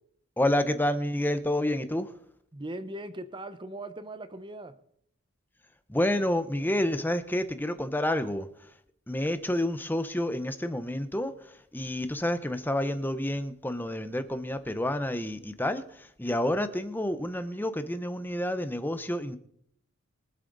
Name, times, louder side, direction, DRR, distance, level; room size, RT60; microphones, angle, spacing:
voice 1, 0.4-2.1 5.9-8.7 9.1-19.4, left 1 dB, 10° left, 10 dB, 0.8 m, -29 dB
voice 2, 2.5-4.7, right 1 dB, 25° right, 11 dB, 0.8 m, -39 dB
24.0 x 8.1 x 4.0 m, 0.69 s
head